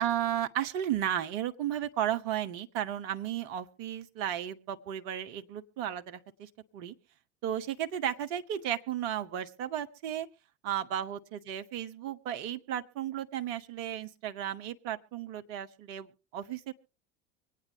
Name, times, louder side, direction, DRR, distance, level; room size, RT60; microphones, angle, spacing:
voice 1, 0.0-6.9 7.4-10.3 10.6-16.7, right 11 dB, 50° right, 9 dB, 1.1 m, -34 dB
24.5 x 9.3 x 3.4 m, 0.33 s
figure-of-eight pair, 80°, 35 cm